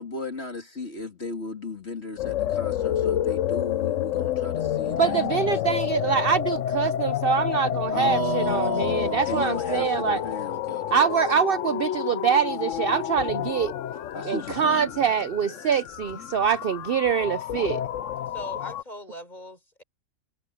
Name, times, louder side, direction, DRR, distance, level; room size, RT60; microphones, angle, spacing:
voice 1, 0.0-5.2 5.4-5.5 7.9-10.8 14.1-14.9, left 1 dB, 45° left, 3.1 m, -33 dB
sound 1, 2.2-18.8, left 10 dB, 65° left, 1.0 m, -29 dB
voice 2, 5.0-10.2 10.9-13.7 14.2-17.8, right 7 dB, 55° right, 0.6 m, -24 dB
voice 3, 18.3-19.8, equal, 30° left, 5.0 m, -40 dB
omnidirectional pair, 1.5 m